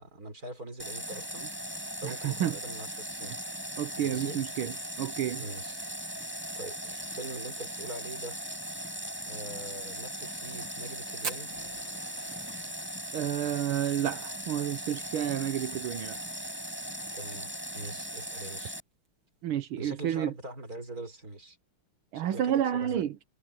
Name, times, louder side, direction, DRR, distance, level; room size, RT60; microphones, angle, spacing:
voice 1, 0.0-1.5 2.0-3.3 4.0-4.4 5.4-5.8 6.6-8.3 9.3-11.5 17.1-18.7 19.8-21.6 22.1-23.0, right 1 dB, 40° right, 6.1 m, -42 dB
Water tap faucet, 0.8-18.8, equal, 5° right, 7.3 m, -39 dB
voice 2, 2.0-2.6 3.3-3.4 3.8-4.7 5.0-5.4 13.1-16.2 19.4-20.3 22.1-23.2, right 11 dB, 80° right, 1.8 m, -30 dB
Fire, 11.2-15.7 16.0-16.1 16.4-16.5 16.8-17.3 17.8-17.9 18.9-19.1, right 5 dB, 60° right, 3.5 m, -42 dB
omnidirectional pair, 2.3 m